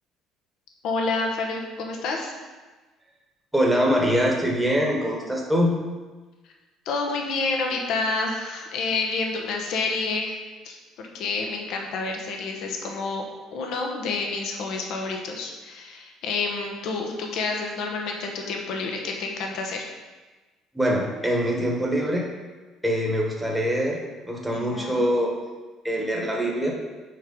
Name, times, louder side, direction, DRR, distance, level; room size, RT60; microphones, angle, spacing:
voice 1, 0.8-2.3 6.8-10.4 10.6-13.2 13.5-19.8 24.5-25.1, left 3 dB, 65° left, 2 dB, 1.0 m, -29 dB
voice 2, 3.5-5.8 20.7-22.2 22.8-24.0 24.3-25.3 25.8-26.7, equal, 5° right, -2 dB, 1.2 m, -23 dB
6.3 x 4.8 x 5.2 m, 1.3 s
cardioid pair, 155°, 0 cm